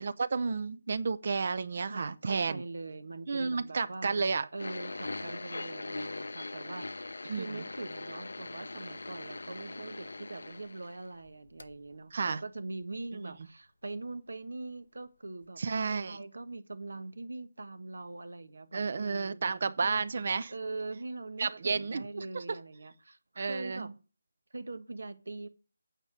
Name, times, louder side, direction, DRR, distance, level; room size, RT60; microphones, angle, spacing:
voice 1, 0.0-2.6 3.3-4.5 7.3-7.5 12.1-12.4 15.6-16.2 18.7-20.5 21.4-22.4 23.4-23.9, right 4 dB, 45° right, 0.7 m, -31 dB
voice 2, 1.8-4.2 4.5-15.6 15.9-20.0 20.5-23.9 24.5-25.5, right 2 dB, 80° right, 1.3 m, -42 dB
sound 1, 4.6-11.3 11.6-11.7 12.5-12.6, left 2 dB, 80° left, 0.8 m, -41 dB
9.0 x 5.1 x 7.4 m
figure-of-eight pair, 170°, 0 cm